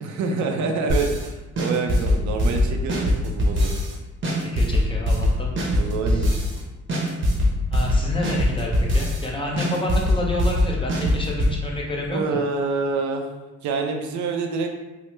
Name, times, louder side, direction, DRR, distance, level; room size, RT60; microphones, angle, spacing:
voice 1, 0.0-3.7 5.7-6.3 12.1-13.3 13.6-14.7, right 4 dB, 70° right, 3 dB, 0.5 m, -26 dB
sound 1, 0.9-1.3 1.6-3.9 4.2-6.6 6.9-9.3 9.6-11.5, equal, 40° right, 0.8 m, -21 dB
voice 2, 4.5-5.5 6.1-6.3 7.7-12.4, left 1 dB, 15° left, -3 dB, 0.7 m, -29 dB
3.3 x 2.0 x 2.9 m, 1.1 s
cardioid pair, 90°, 30 cm